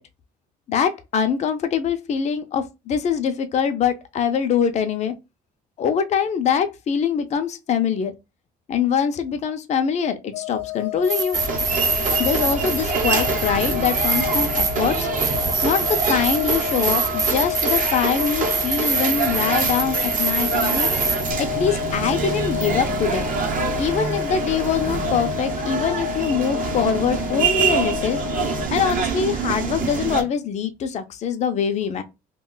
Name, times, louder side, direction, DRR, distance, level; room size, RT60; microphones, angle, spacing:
voice 1, 0.7-5.1 5.8-8.1 8.7-11.4 12.2-15.1 15.6-20.9 21.4-23.3 23.8-28.2 28.7-32.0, left 7 dB, 40° left, 0.5 m, -23 dB
sound 1, 10.3-28.7, left 18 dB, 90° left, 0.7 m, -30 dB
sound 2, 11.0-21.3, right 4 dB, 20° right, 0.4 m, -25 dB
sound 3, 11.3-30.2, right 6 dB, 50° right, 0.8 m, -26 dB
2.3 x 2.2 x 3.8 m
cardioid pair, 110°, 17 cm